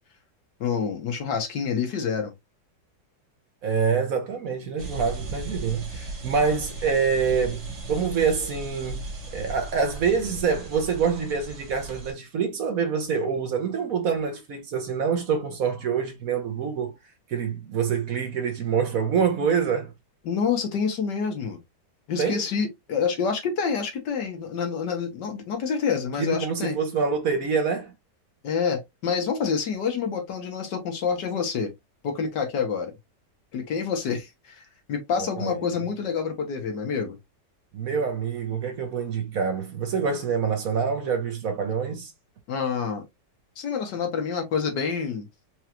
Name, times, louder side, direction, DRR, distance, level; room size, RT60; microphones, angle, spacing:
voice 1, 0.6-2.3 5.9-6.1 20.3-21.6 22.1-26.8 28.4-31.7 32.0-32.9 33.5-34.6 34.9-37.2 42.5-43.0 43.6-45.3, left 6 dB, 75° left, 1.8 m, -27 dB
voice 2, 3.6-7.6 7.9-16.9 17.3-19.9 22.2-22.4 26.2-27.9 35.4-35.6 37.7-42.1, right 6 dB, 60° right, 1.1 m, -26 dB
sound 1, 4.8-12.1, right 2 dB, 45° right, 1.3 m, -37 dB
4.7 x 2.5 x 2.9 m
omnidirectional pair, 1.9 m